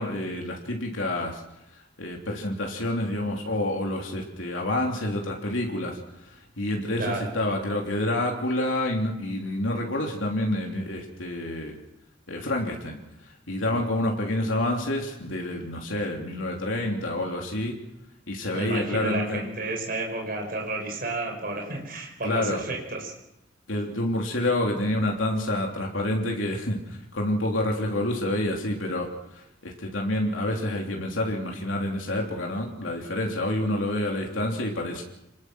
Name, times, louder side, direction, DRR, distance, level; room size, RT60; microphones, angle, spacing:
voice 1, 0.0-1.4 2.0-11.7 12.3-17.8 18.3-19.5 22.2-22.6 23.7-35.0, left 1 dB, 80° left, 0 dB, 3.2 m, -28 dB
voice 2, 18.5-23.1, right 2 dB, 50° right, 2 dB, 5.4 m, -31 dB
26.5 x 20.5 x 6.3 m, 0.88 s
head